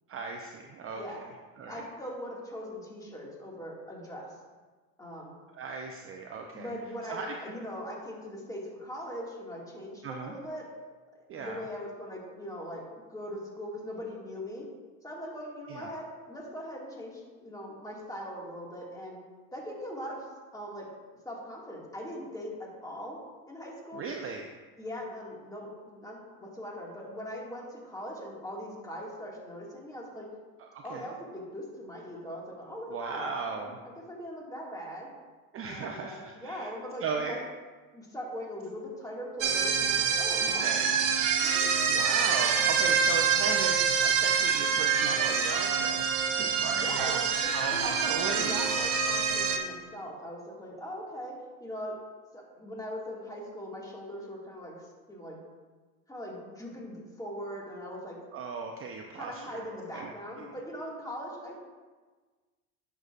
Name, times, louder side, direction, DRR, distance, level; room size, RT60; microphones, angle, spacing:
voice 1, 0.1-1.0 1.6-1.8 5.5-6.7 7.1-7.3 10.0-10.3 11.3-11.6 15.7-15.9 23.9-24.4 30.6-31.1 32.9-33.7 35.5-36.7 37.0-37.4 40.6-40.9 41.9-46.1 46.4-47.2 47.5-48.9 58.3-59.6 59.9-60.1 60.4-60.5, right 5 dB, 30° right, 2 dB, 0.7 m, -37 dB
voice 2, 1.7-4.3 5.0-5.3 6.5-10.6 11.4-12.8 13.1-14.6 15.0-19.2 19.5-20.9 21.2-23.2 23.5-24.0 24.8-30.3 30.8-33.7 34.1-35.1 35.7-37.4 37.9-40.7 41.4-41.7 46.8-51.3 51.6-51.9 52.3-55.4 56.1-58.2 59.2-61.6, equal, 10° left, -3 dB, 2.1 m, -40 dB
sound 1, 39.4-49.6, right 6 dB, 45° right, 1.2 m, -26 dB
10.5 x 6.8 x 2.5 m, 1.4 s
supercardioid pair, 105°, 43 cm